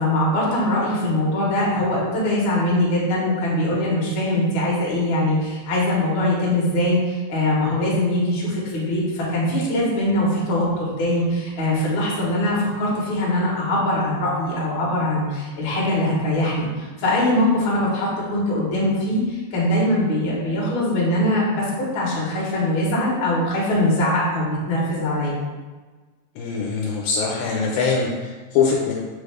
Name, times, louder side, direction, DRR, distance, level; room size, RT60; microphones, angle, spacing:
voice 1, 0.0-25.3, left 1 dB, 55° left, -6 dB, 1.5 m, -22 dB
voice 2, 26.4-28.9, left 5 dB, 85° left, -2 dB, 2.0 m, -22 dB
6.3 x 2.4 x 3.3 m, 1.3 s
omnidirectional pair, 3.3 m